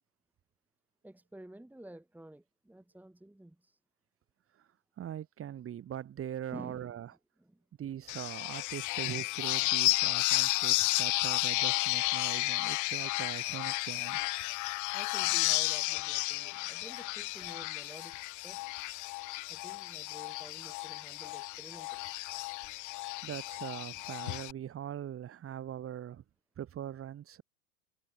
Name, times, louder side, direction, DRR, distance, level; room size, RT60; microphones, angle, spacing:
voice 1, 1.0-3.8 6.5-7.6 14.9-18.6 19.5-22.0, right 1 dB, 5° right, 3.3 m, -51 dB
voice 2, 5.0-7.1 7.8-14.2 23.2-26.2 26.6-27.4, right 10 dB, 30° right, 2.5 m, -41 dB
sound 1, 8.1-24.5, left 22 dB, 40° left, 1.1 m, -32 dB
hypercardioid pair, 100°, 46 cm